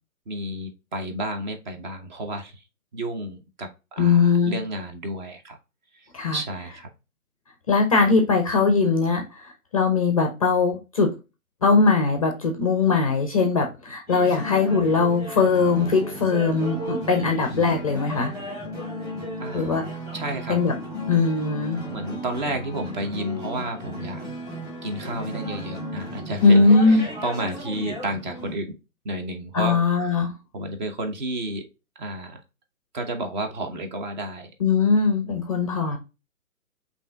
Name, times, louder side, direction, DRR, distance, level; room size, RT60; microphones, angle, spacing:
voice 1, 0.3-2.6 2.9-5.6 5.9-6.9 19.4-20.6 21.9-24.2 24.8-26.6 26.9-28.8 29.0-29.8 30.5-31.6 32.0-32.4 32.9-34.5 35.8-36.0, right 1 dB, 30° right, 5 dB, 0.9 m, -31 dB
voice 2, 4.0-4.6 6.1-6.4 7.7-11.1 11.6-18.3 19.5-19.9 20.5-20.7 21.1-21.8 26.4-27.0 29.5-30.3 34.6-36.0, left 4 dB, 25° left, 4 dB, 0.5 m, -20 dB
sound 1, 14.1-28.5, equal, 10° right, 1.7 m, -35 dB
5.3 x 2.8 x 3.4 m, 0.28 s
figure-of-eight pair, 130°, 43 cm